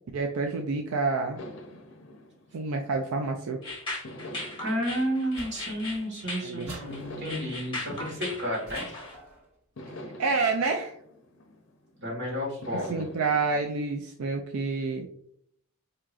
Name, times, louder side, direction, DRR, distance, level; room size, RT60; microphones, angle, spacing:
voice 1, 0.1-1.4 2.5-3.6 6.4-6.7 10.2-11.0 12.9-15.1, right 4 dB, 85° right, 3 dB, 0.4 m, -28 dB
sound 1, 1.4-3.4 4.0-6.3 6.9-9.2 9.8-12.0 12.6-13.7, left 1 dB, 60° left, 0.6 m, -46 dB
sound 2, 3.6-9.1, left 2 dB, 20° left, 1.2 m, -38 dB
voice 2, 4.6-8.8 12.0-13.1, equal, 55° right, -3 dB, 1.6 m, -31 dB
sound 3, 5.4-6.2 6.7-7.5 8.7-9.5, right 1 dB, 70° right, 1.4 m, -46 dB
4.7 x 2.8 x 2.4 m, 0.69 s
head